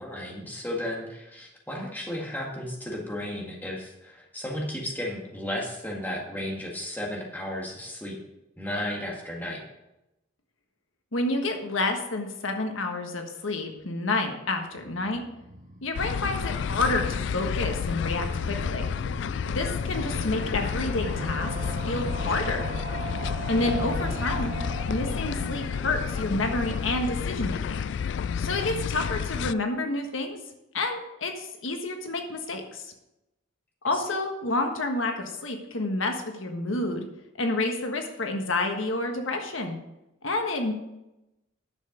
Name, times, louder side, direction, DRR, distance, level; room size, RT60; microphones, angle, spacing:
voice 1, 0.0-8.2 8.6-9.6 23.6-24.0 33.9-34.2, left 1 dB, 10° left, -1 dB, 1.9 m, -34 dB
voice 2, 11.1-15.2 15.8-18.9 19.5-21.6 21.8-22.6 23.5-24.6 24.9-27.8 28.4-30.4 30.7-32.9 33.8-37.1 37.4-39.8 40.2-40.7, left 2 dB, 85° left, 4 dB, 1.4 m, -29 dB
sound 1, 14.7-27.7 28.0-28.1 28.3-28.4 28.6-28.7, right 2 dB, 40° right, 1.0 m, -39 dB
sound 2, 15.9-29.5, left 7 dB, 65° left, 0.3 m, -30 dB
10.5 x 6.9 x 5.2 m, 0.91 s
head